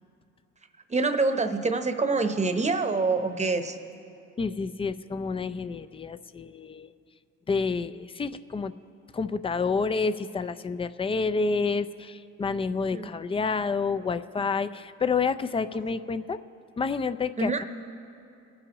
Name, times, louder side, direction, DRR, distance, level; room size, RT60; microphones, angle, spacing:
voice 1, 0.9-3.8 12.9-13.1 17.4-17.6, right 3 dB, 25° right, 8 dB, 0.9 m, -26 dB
voice 2, 4.4-6.9 7.5-8.7 9.1-16.4 16.8-17.6, left 4 dB, 20° left, 12 dB, 0.4 m, -29 dB
23.0 x 9.7 x 3.0 m, 2.7 s
cardioid pair, 90°, 30 cm